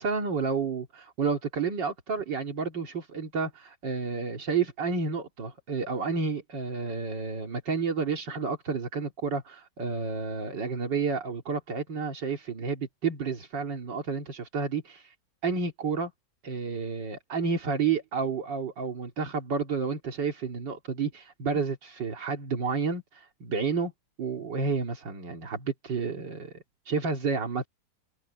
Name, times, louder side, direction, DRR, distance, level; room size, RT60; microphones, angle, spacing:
voice 1, 0.0-15.0 15.4-16.1 16.4-23.9 24.2-26.5 26.9-27.7, right 5 dB, 80° right, 3.0 m, -30 dB
omnidirectional pair, 1.9 m